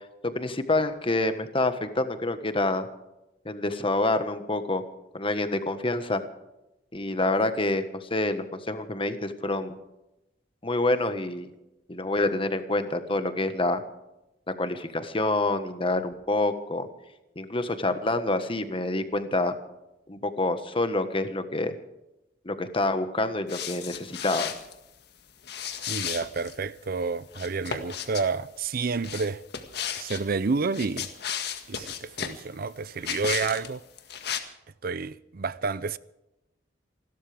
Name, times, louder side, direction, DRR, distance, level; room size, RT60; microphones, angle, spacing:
voice 1, 0.2-2.9 3.4-4.8 5.1-6.2 6.9-9.7 10.6-11.5 11.9-13.8 14.6-16.9 17.3-19.5 20.1-21.7 22.4-24.5, left 2 dB, 30° left, 1.4 m, -27 dB
sound 1, 23.5-24.7 25.4-26.6 27.3-28.3 29.0-30.2 30.7-32.4 33.0-33.7 34.0-34.4, left 8 dB, 60° left, 1.8 m, -34 dB
voice 2, 25.9-29.4 30.0-31.1 31.7-33.8 34.8-36.0, right 4 dB, 55° right, 0.6 m, -29 dB
29.0 x 13.0 x 3.5 m
head